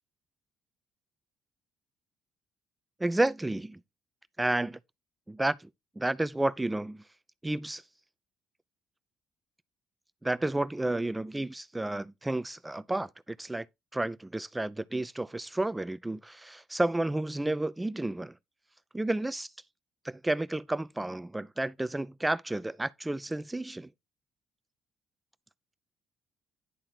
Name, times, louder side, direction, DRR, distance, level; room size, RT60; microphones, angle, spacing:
voice 1, 3.0-3.8 4.4-4.8 5.3-5.7 6.0-7.0 7.4-7.8 10.2-13.7 13.9-18.3 18.9-19.5 20.0-23.9, right 2 dB, 15° right, 0.6 m, -31 dB
11.0 x 3.7 x 4.4 m
hypercardioid pair, 55°, 0 cm